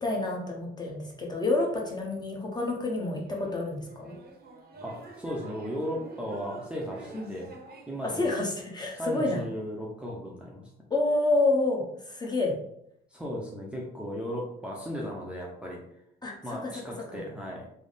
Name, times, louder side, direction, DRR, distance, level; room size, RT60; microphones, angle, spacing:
voice 1, 0.0-4.1 7.1-7.3 8.0-9.4 10.9-12.5 16.2-16.7 17.1-17.2, left 2 dB, 20° left, -1 dB, 0.9 m, -28 dB
sound 1, 3.1-8.5, right 2 dB, 50° right, 0.8 m, -48 dB
voice 2, 4.8-7.5 7.9-8.3 8.9-10.6 13.1-15.8 16.4-17.7, equal, 5° right, -4 dB, 0.7 m, -36 dB
3.4 x 2.0 x 4.0 m, 0.75 s
cardioid pair, 90°, 20 cm